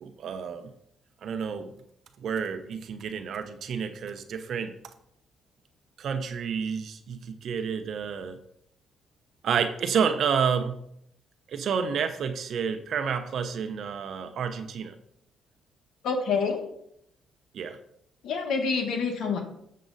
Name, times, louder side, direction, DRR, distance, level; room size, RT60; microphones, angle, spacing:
voice 1, 0.0-0.7 1.2-1.7 2.2-4.7 6.0-8.4 9.4-10.8 11.5-15.0 17.5-17.8, right 6 dB, 65° right, 8 dB, 0.8 m, -29 dB
voice 2, 16.0-16.6 18.2-19.4, left 5 dB, 80° left, 4 dB, 1.5 m, -27 dB
7.5 x 7.2 x 4.0 m, 0.73 s
cardioid pair, 90°, 0 cm